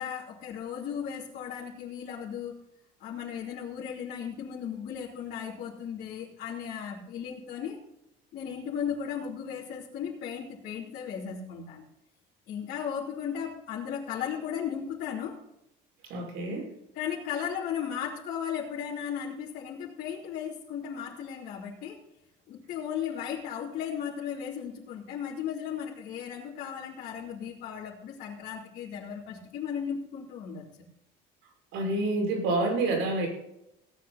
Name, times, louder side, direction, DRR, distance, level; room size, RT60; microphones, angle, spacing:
voice 1, 0.0-2.6 3.0-7.8 8.3-11.8 12.5-15.4 16.9-22.0 22.5-30.7, left 8 dB, 50° left, -6 dB, 3.0 m, -36 dB
voice 2, 16.1-16.7 31.7-33.3, right 2 dB, 70° right, 0 dB, 6.0 m, -28 dB
17.5 x 9.4 x 4.2 m, 0.84 s
cardioid pair, 175°, 20 cm